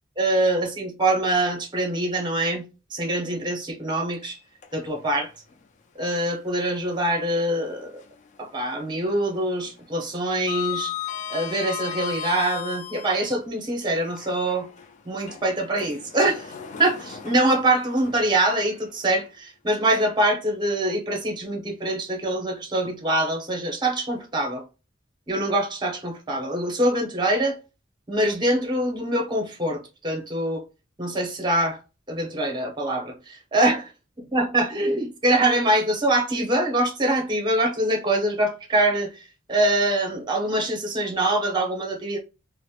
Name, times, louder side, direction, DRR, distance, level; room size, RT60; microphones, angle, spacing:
voice 1, 0.2-2.6 2.9-4.4 4.7-5.3 6.0-7.9 8.4-10.9 11.3-14.7 15.1-16.5 16.8-24.6 25.3-27.6 28.1-30.6 31.0-31.8 32.1-33.8 34.3-39.2 39.5-42.2, right 1 dB, 25° right, 0.7 m, -24 dB
Sliding door, 4.1-5.1 5.5-5.6 7.3-8.4 8.6-9.0 9.3-13.4 14.0-19.2, left 9 dB, 35° left, 0.3 m, -36 dB
2.9 x 2.0 x 2.3 m
head